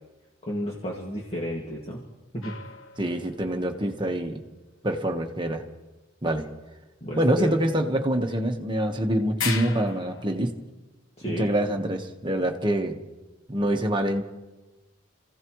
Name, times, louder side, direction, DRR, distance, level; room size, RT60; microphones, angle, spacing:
voice 1, 0.4-2.0 2.3-2.6 7.0-7.5 11.2-11.5, equal, 30° left, -2 dB, 2.1 m, -32 dB
sound 1, 2.4-3.7 8.3-8.4 8.7-8.8 9.4-10.3, left 6 dB, 80° left, 1.2 m, -35 dB
voice 2, 3.0-4.4 4.8-5.6 6.2-6.5 7.2-10.5 11.4-13.0 13.5-14.2, right 1 dB, 25° right, 3 dB, 1.3 m, -25 dB
29.0 x 16.0 x 3.1 m, 1.1 s
head